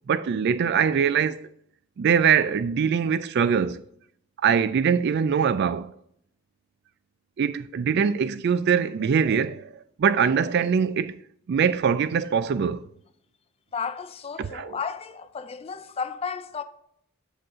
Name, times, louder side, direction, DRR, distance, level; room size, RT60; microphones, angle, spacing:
voice 1, 0.1-1.5 2.0-3.8 4.4-5.9 7.4-9.7 10.0-11.1 11.5-12.8 14.4-14.8, right 7 dB, 50° right, 0.3 m, -23 dB
voice 2, 13.7-16.6, left 6 dB, 30° left, 0.4 m, -33 dB
7.8 x 5.1 x 3.6 m
head